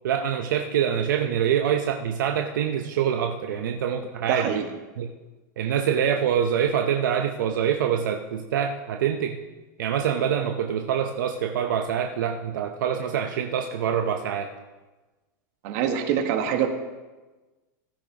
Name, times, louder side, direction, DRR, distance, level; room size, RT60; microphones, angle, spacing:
voice 1, 0.0-4.6 5.0-5.1 5.6-9.4 9.8-14.5, right 8 dB, 80° right, 4 dB, 0.8 m, -25 dB
voice 2, 4.3-4.7 15.6-16.7, right 8 dB, 55° right, 5 dB, 1.6 m, -25 dB
16.0 x 13.0 x 3.0 m, 1.2 s
supercardioid pair, 135°, 10 cm